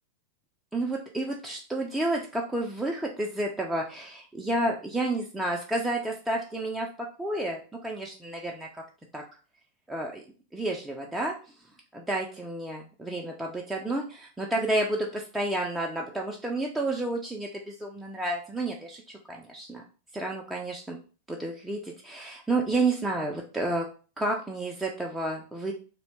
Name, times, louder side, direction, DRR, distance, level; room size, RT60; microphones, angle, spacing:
voice 1, 0.7-8.7 9.1-9.2 9.9-10.2 10.5-11.3 11.9-19.0 19.3-19.8 20.1-21.0 21.3-23.9 24.2-25.7, right 2 dB, 5° right, -1 dB, 0.4 m, -30 dB
2.7 x 2.1 x 2.9 m, 0.37 s
figure-of-eight pair, 90°, 0 cm